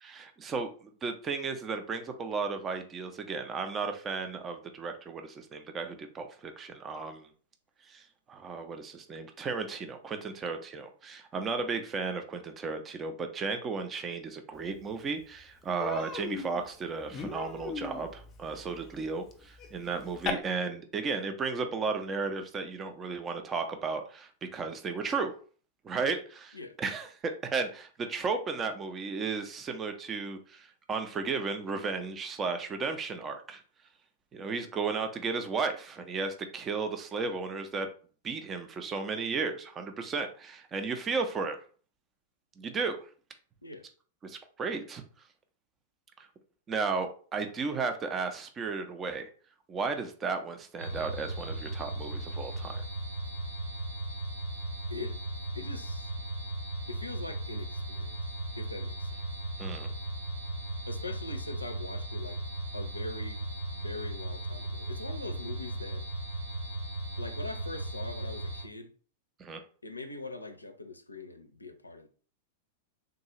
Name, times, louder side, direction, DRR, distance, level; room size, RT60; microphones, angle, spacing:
voice 1, 0.0-0.7 1.0-7.3 7.9-8.0 8.3-25.3 25.8-33.6 34.3-37.9 38.2-41.6 42.6-43.1 44.2-45.0 46.7-49.3 49.7-52.8 59.6-59.9 69.4-69.6, right 4 dB, 25° right, 0.5 m, -34 dB
Human voice, 14.8-14.9 15.2-15.4 15.8-20.3, left 5 dB, 25° left, 0.6 m, -39 dB
sound 1, 50.8-68.6, right 1 dB, 85° right, 1.4 m, -37 dB
voice 2, 54.9-55.2 55.5-56.1 56.9-58.2 58.6-59.2 60.9-62.4 62.7-63.4 63.7-66.1 67.2-68.9 69.8-72.1, left 2 dB, 85° left, 0.4 m, -42 dB
3.7 x 2.3 x 2.9 m
figure-of-eight pair, 95°, 0 cm